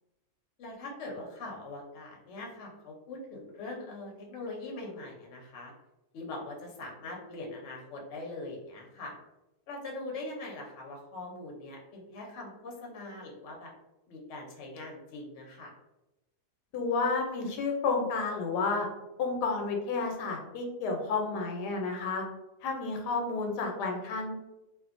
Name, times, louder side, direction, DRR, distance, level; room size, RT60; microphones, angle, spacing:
voice 1, 0.6-5.7 6.1-9.2 9.7-13.7 14.1-15.7, left 2 dB, 60° left, 0 dB, 0.8 m, -42 dB
voice 2, 16.7-18.9 19.2-22.2 22.6-24.3, left 4 dB, 85° left, 2 dB, 1.2 m, -31 dB
2.7 x 2.4 x 2.4 m, 0.97 s
omnidirectional pair, 1.7 m